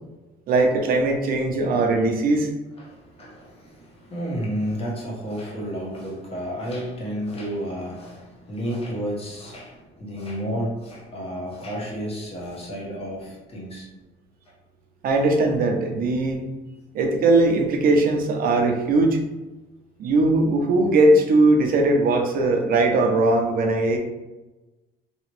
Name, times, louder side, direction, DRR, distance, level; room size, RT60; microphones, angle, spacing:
voice 1, 0.5-2.5 15.0-16.4 16.9-19.2 20.0-24.0, right 2 dB, 60° right, 4 dB, 0.7 m, -19 dB
voice 2, 2.8-13.9 14.4-14.5, equal, 35° left, -4 dB, 1.3 m, -31 dB
3.0 x 3.0 x 3.0 m, 1.1 s
cardioid pair, 110°, 17 cm